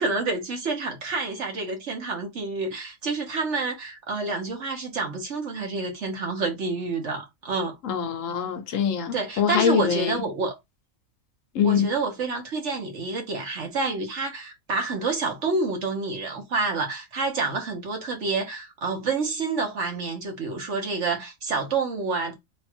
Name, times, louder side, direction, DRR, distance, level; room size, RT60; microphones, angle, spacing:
voice 1, 0.0-7.7 9.1-10.5 11.6-22.3, right 3 dB, 60° right, 1.3 m, -28 dB
voice 2, 7.8-10.2 11.5-11.9, left 8 dB, 70° left, 1.0 m, -24 dB
3.2 x 2.4 x 4.3 m
omnidirectional pair, 1.5 m